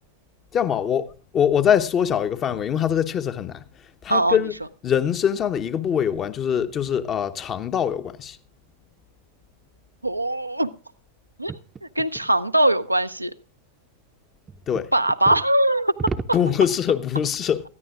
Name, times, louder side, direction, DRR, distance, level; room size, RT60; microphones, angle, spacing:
voice 1, 0.5-3.6 4.0-4.5 4.8-8.4 14.7-14.9 16.3-17.6, left 8 dB, 30° left, 0.9 m, -23 dB
voice 2, 4.1-4.4 10.0-10.7 11.4-11.5 12.0-13.3 14.9-16.0 16.3-16.4, right 1 dB, 85° right, 0.6 m, -21 dB
sound 1, 11.5-12.3 14.5-15.5 16.0-17.0, right 4 dB, 20° right, 0.7 m, -33 dB
19.5 x 14.0 x 2.4 m
figure-of-eight pair, 90°, 0 cm